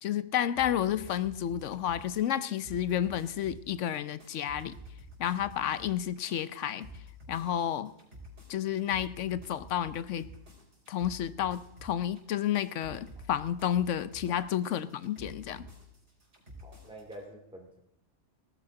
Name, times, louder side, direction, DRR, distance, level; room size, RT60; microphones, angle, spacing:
voice 1, 0.0-4.8 5.2-6.9 7.3-7.9 8.5-10.3 10.9-15.7, left 10 dB, 90° left, 14 dB, 1.0 m, -31 dB
sound 1, 0.6-17.2, equal, 75° right, 4.7 m, -50 dB
voice 2, 16.6-17.8, right 1 dB, 5° right, 0 dB, 2.2 m, -47 dB
19.0 x 14.5 x 3.8 m, 0.78 s
omnidirectional pair, 1.2 m